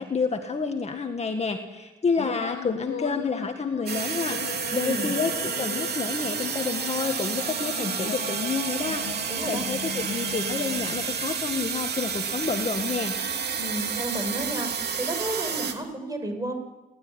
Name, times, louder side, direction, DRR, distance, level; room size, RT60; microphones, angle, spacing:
voice 1, 0.0-13.1, left 4 dB, 35° left, 5 dB, 2.0 m, -29 dB
sound 1, 2.2-11.2, left 9 dB, 75° left, 1.4 m, -38 dB
sound 2, 3.9-15.7, right 6 dB, 55° right, 2.9 m, -30 dB
voice 2, 4.7-5.1 9.3-9.7 13.5-14.7 15.0-16.5, right 1 dB, 20° right, 5 dB, 6.4 m, -32 dB
29.5 x 12.5 x 9.9 m, 1.1 s
cardioid pair, 90°, 20 cm